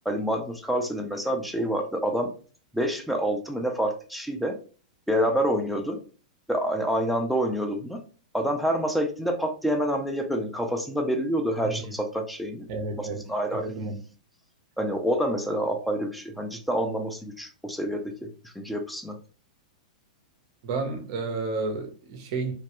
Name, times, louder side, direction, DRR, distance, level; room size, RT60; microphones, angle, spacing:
voice 1, 0.1-2.3 2.7-4.5 5.1-6.0 6.5-8.0 8.3-12.7 13.0-13.7 14.8-19.2, equal, ahead, 0.4 m, -27 dB
voice 2, 12.7-14.0 20.6-22.5, right 3 dB, 45° right, 0.7 m, -31 dB
3.0 x 2.3 x 2.9 m
hypercardioid pair, 150°, 4 cm